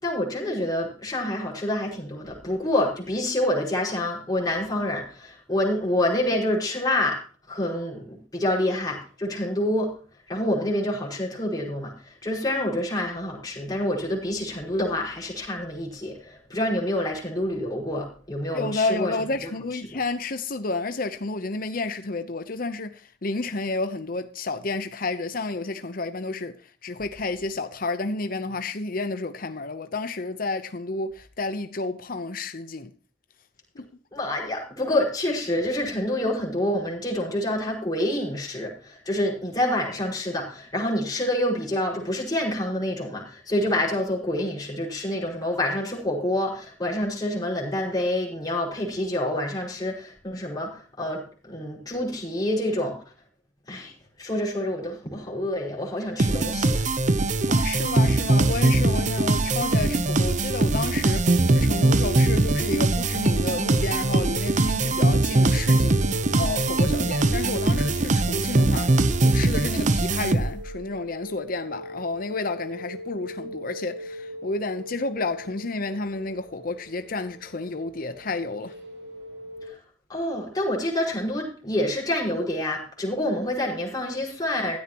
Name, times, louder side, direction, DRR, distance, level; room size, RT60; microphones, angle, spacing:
voice 1, 0.0-7.2 7.5-9.9 10.3-19.1 34.1-52.9 53.7-53.9 54.2-56.8 79.7-79.8 80.1-84.8, left 1 dB, 20° left, 5.4 m, -27 dB
voice 2, 18.5-32.9 33.8-33.9 57.5-78.7, left 3 dB, 50° left, 0.9 m, -31 dB
sound 1, 56.2-70.8, right 2 dB, 45° right, 0.8 m, -22 dB
sound 2, 61.4-79.7, equal, 85° right, 7.5 m, -41 dB
16.0 x 13.0 x 3.0 m
head